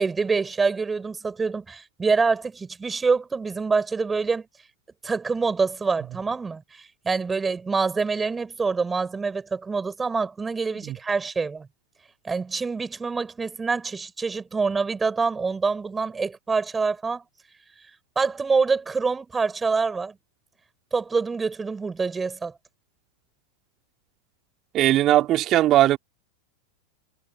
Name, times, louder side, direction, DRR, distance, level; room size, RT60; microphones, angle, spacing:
voice 1, 0.0-4.5 5.0-11.7 12.2-17.2 18.2-20.2 20.9-22.5, right 4 dB, 15° right, 7.2 m, -26 dB
voice 2, 24.7-26.0, right 14 dB, 35° right, 3.3 m, -19 dB
figure-of-eight pair, 90°, 0 cm